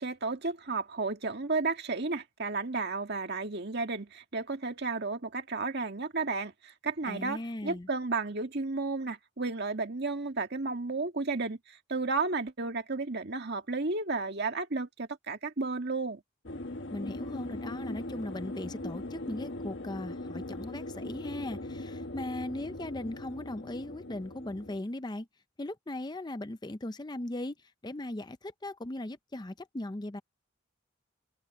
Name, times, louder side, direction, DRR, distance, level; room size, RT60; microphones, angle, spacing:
voice 1, 0.0-16.2, right 3 dB, 55° right, 2.0 m, -33 dB
voice 2, 7.1-7.9 16.9-25.3 25.6-27.6 27.8-30.2, left 1 dB, 20° left, 0.6 m, -38 dB
sound 1, 16.5-24.8, left 1 dB, 60° left, 1.4 m, -40 dB
head